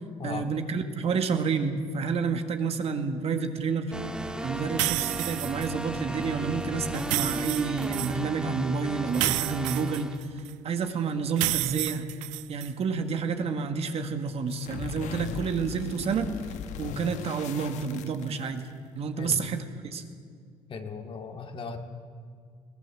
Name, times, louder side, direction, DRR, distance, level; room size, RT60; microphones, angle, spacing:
voice 1, 0.2-3.9 4.4-10.2 10.6-12.1 12.5-16.3 16.8-18.7 19.0-20.1, right 5 dB, 55° right, 6 dB, 1.9 m, -29 dB
sound 1, 3.9-10.2, right 1 dB, 5° right, 1.9 m, -35 dB
sound 2, 4.8-5.7 6.9-8.1 9.1-10.5 11.4-12.7, right 20 dB, 85° right, 0.5 m, -30 dB
sound 3, 14.5-18.7, left 8 dB, 75° left, 1.2 m, -38 dB
voice 2, 20.7-21.8, left 4 dB, 45° left, 4 dB, 2.4 m, -37 dB
21.5 x 17.5 x 7.7 m, 2.1 s
supercardioid pair, 75°, 12 cm